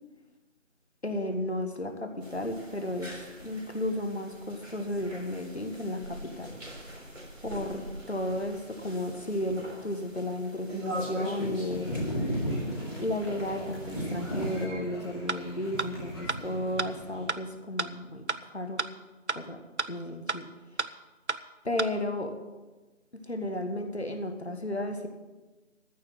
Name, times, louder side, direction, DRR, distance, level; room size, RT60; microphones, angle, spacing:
voice 1, 1.0-6.5 7.4-11.9 13.0-18.8 19.3-19.6 19.9-20.5 21.6-22.3 23.2-25.1, left 1 dB, 60° left, 6 dB, 1.7 m, -33 dB
sound 1, 2.2-14.7, equal, 90° right, 3.9 m, -42 dB
sound 2, 11.7-17.4, equal, 20° left, 3.0 m, -35 dB
sound 3, 15.3-15.4 15.8-15.9 16.3-16.4 16.8-16.9 17.3-17.4 17.8-17.9 18.3-18.4 18.8-18.9 19.3-19.4 19.8-19.9 20.3-20.4 20.8-20.9 21.3-21.4 21.8-21.9, right 4 dB, 60° right, 0.6 m, -29 dB
14.0 x 7.2 x 7.5 m, 1.2 s
figure-of-eight pair, 175°, 37 cm